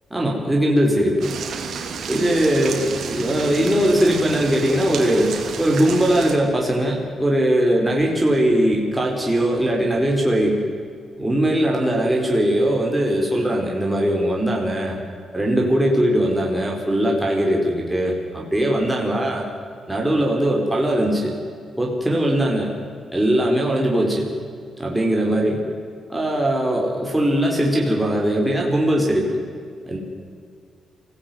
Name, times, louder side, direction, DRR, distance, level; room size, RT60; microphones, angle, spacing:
voice 1, 0.1-1.3 2.1-10.6 11.2-15.0 15.3-19.4 19.9-21.4 21.8-22.7 23.1-24.3 24.8-25.6 26.1-29.4 29.9-30.0, right 1 dB, 10° right, -2 dB, 4.7 m, -20 dB
sound 1, 1.2-6.4, right 6 dB, 70° right, 3.2 m, -31 dB
24.0 x 17.0 x 9.5 m, 2.2 s
cardioid pair, 95°, 0 cm